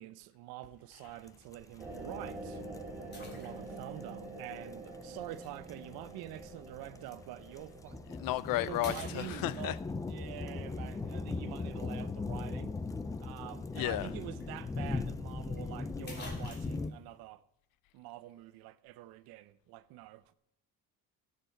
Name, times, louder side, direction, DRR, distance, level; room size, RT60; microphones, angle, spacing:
voice 1, 0.0-2.6 3.4-8.0 8.6-9.8 10.1-12.7 13.2-17.4 17.9-20.2, right 15 dB, 85° right, 0.7 m, -46 dB
sound 1, 0.6-0.9 1.6-1.7 3.1-3.9 5.4-5.5 7.7-7.9 8.3-8.5 8.8-9.9 14.0-14.1 14.4-14.5 15.6-15.7 16.1-16.9, left 2 dB, 30° left, 2.7 m, -49 dB
sound 2, 1.3-1.4 1.5-16.9, left 3 dB, 10° left, 0.3 m, -39 dB
sound 3, 1.8-10.7, right 2 dB, 5° right, 3.4 m, -47 dB
voice 2, 8.1-9.8 13.7-14.1, left 16 dB, 65° left, 0.6 m, -33 dB
16.5 x 6.9 x 4.5 m
cardioid pair, 155°, 36 cm